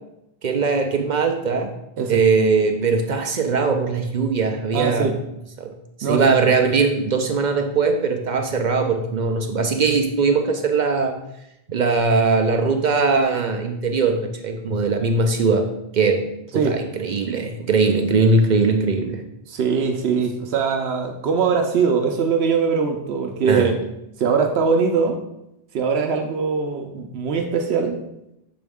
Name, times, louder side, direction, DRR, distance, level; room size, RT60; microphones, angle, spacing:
voice 1, 0.4-1.7 2.1-5.1 5.6-5.7 6.0-11.2 11.7-15.7 15.9-16.3 16.5-19.2 23.5-23.8, right 4 dB, 55° right, 5 dB, 0.6 m, -20 dB
voice 2, 4.7-5.2 6.0-6.3 16.5-16.8 19.5-23.8 24.2-25.2 25.7-28.0, right 5 dB, 85° right, 4 dB, 0.9 m, -21 dB
6.9 x 4.0 x 3.5 m, 0.86 s
omnidirectional pair, 1.0 m